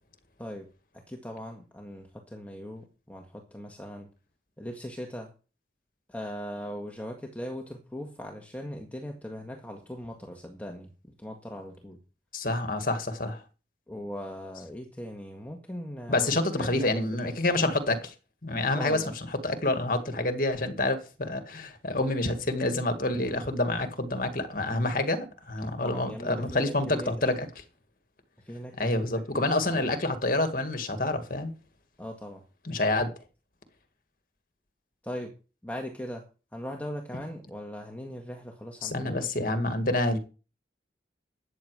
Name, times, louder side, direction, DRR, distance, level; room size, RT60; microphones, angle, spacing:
voice 1, 0.9-4.1 4.6-5.3 6.1-10.9 11.2-12.0 13.9-17.3 18.7-19.1 25.8-27.3 28.5-29.0 29.3-29.9 32.0-32.4 35.0-35.3 35.6-36.2 36.5-39.3, equal, 10° left, 1.7 m, -39 dB
voice 2, 12.3-13.4 16.1-18.1 18.4-19.0 19.4-27.5 28.8-31.5 32.6-33.1 38.8-40.2, left 2 dB, 50° left, 2.1 m, -28 dB
13.5 x 9.1 x 4.9 m
head